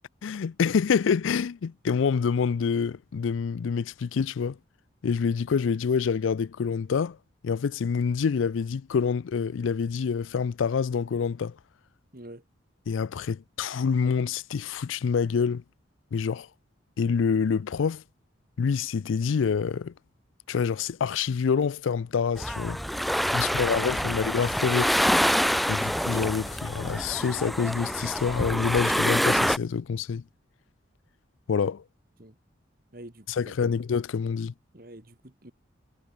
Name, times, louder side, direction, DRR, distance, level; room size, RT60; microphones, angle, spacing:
voice 1, 0.2-4.6 5.0-7.2 7.4-11.6 12.9-15.6 16.1-16.5 17.0-18.0 18.6-19.9 20.5-22.8 23.3-24.9 25.7-30.2 31.5-31.8 33.4-34.5, left 6 dB, 85° left, 0.4 m, -27 dB
voice 2, 12.1-12.4 23.2-24.0 32.2-32.4 32.9-33.8 34.7-35.5, right 1 dB, 50° right, 2.6 m, -47 dB
sound 1, 22.4-29.6, equal, ahead, 0.4 m, -26 dB
head